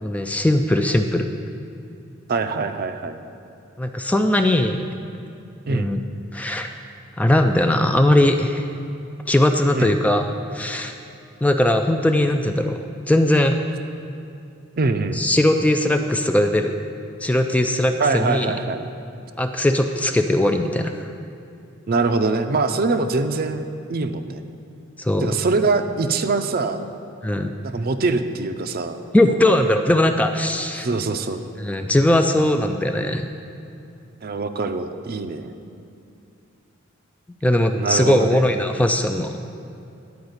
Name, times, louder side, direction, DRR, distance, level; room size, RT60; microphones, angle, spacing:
voice 1, 0.0-1.3 3.8-4.9 5.7-6.0 6.3-6.7 7.2-8.7 9.3-10.3 10.5-10.9 11.4-12.8 13.1-13.6 15.1-16.7 17.2-18.5 19.4-20.9 25.0-25.4 27.2-27.5 29.1-30.9 31.6-33.3 37.4-39.4, left 1 dB, 5° left, 6 dB, 0.3 m, -19 dB
voice 2, 2.3-3.2 5.7-5.9 9.7-10.0 14.8-15.2 18.0-18.8 21.9-23.6 23.9-24.4 25.2-26.8 27.6-29.0 29.3-29.6 30.8-31.4 34.2-35.5 37.7-38.4, right 3 dB, 50° right, 9 dB, 0.5 m, -23 dB
10.5 x 4.8 x 8.0 m, 2.6 s
head